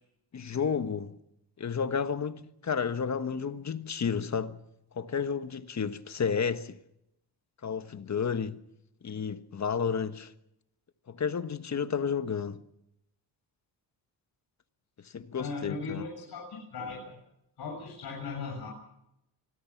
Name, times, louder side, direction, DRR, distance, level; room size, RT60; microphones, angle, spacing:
voice 1, 0.3-1.2 1.6-4.6 4.9-6.8 7.6-8.6 9.0-10.3 11.1-12.6 15.0-16.0, left 6 dB, 40° left, 1.4 m, -31 dB
voice 2, 15.4-17.2 17.6-18.7, left 4 dB, 60° left, 7.8 m, -38 dB
25.0 x 21.0 x 6.0 m
cardioid pair, 90°, 42 cm